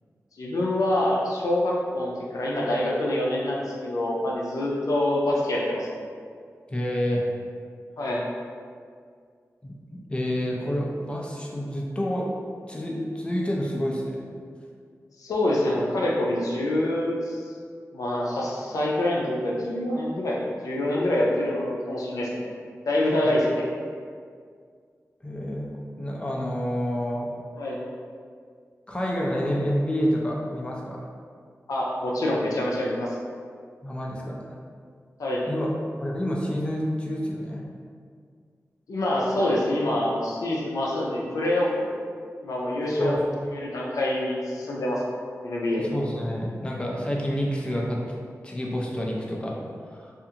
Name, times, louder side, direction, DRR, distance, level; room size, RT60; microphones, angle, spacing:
voice 1, 0.4-5.9 8.0-8.2 15.2-17.4 17.9-22.5 22.8-23.6 27.6-27.8 31.7-33.2 35.2-35.4 38.9-41.9 42.4-43.2 43.5-45.0 45.4-45.9, left 1 dB, 85° left, -3 dB, 0.4 m, -26 dB
voice 2, 6.7-7.3 9.6-12.3 12.7-14.3 23.2-23.3 25.2-25.7 26.0-27.3 28.9-31.0 33.8-34.4 35.5-35.7 36.0-37.6 43.0-43.2 45.8-48.0 48.4-49.6 49.9-50.1, equal, 20° left, -2 dB, 0.4 m, -28 dB
2.4 x 2.4 x 2.8 m, 2.1 s
wide cardioid pair, 65°, 6 cm